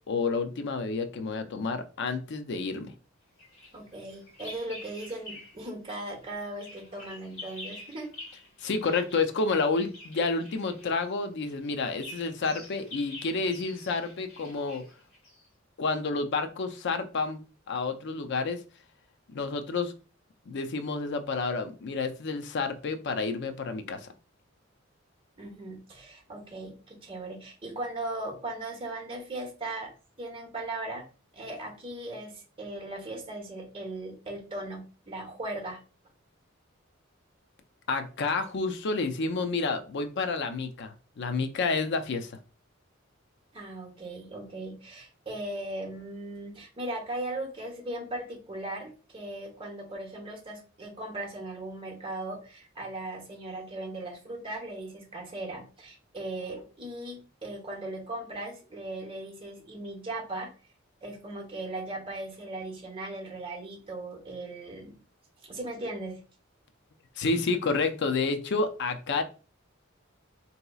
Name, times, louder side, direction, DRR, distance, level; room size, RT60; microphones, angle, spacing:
voice 1, 0.1-2.9 8.6-14.8 15.8-17.4 17.7-18.6 19.3-19.9 20.5-24.1 37.9-42.3 67.2-69.2, left 4 dB, 60° left, 8 dB, 0.5 m, -29 dB
Bird vocalization bird call bird song, 3.4-5.7 6.0-15.5, left 2 dB, 75° left, 1.5 m, -47 dB
voice 2, 3.7-8.1 25.4-29.9 30.2-31.0 31.3-35.8 43.5-60.5 61.0-65.0 65.4-66.2, right 2 dB, 25° right, 0 dB, 1.0 m, -38 dB
3.9 x 2.8 x 2.3 m, 0.36 s
head